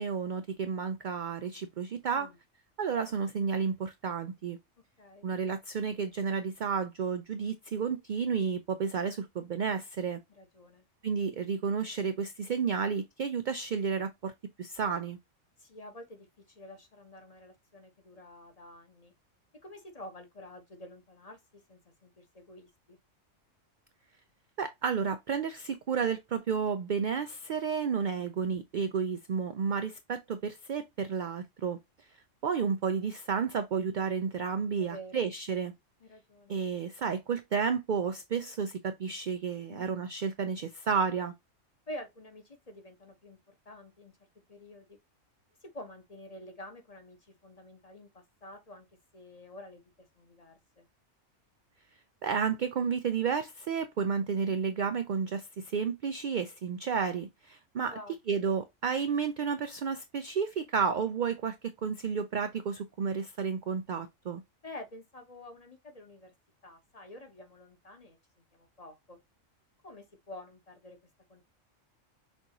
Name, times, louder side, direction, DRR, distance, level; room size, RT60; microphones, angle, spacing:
voice 1, 0.0-2.3 2.8-4.6 5.2-10.2 11.0-14.3 14.6-15.2 24.6-31.8 32.4-35.7 36.5-41.3 52.2-57.9 58.3-61.6 61.8-64.4, right 6 dB, 70° right, 0.4 m, -31 dB
voice 2, 5.0-5.3 10.3-10.9 15.6-19.1 19.6-23.0 34.8-35.3 36.0-36.6 39.7-39.9 41.9-44.1 44.5-45.0 45.6-48.9 49.1-50.9 57.8-58.2 64.6-66.3 66.6-68.2 68.5-69.2 69.8-71.0 71.3-71.4, left 1 dB, 30° left, 1.0 m, -49 dB
6.3 x 2.6 x 2.9 m
omnidirectional pair, 1.3 m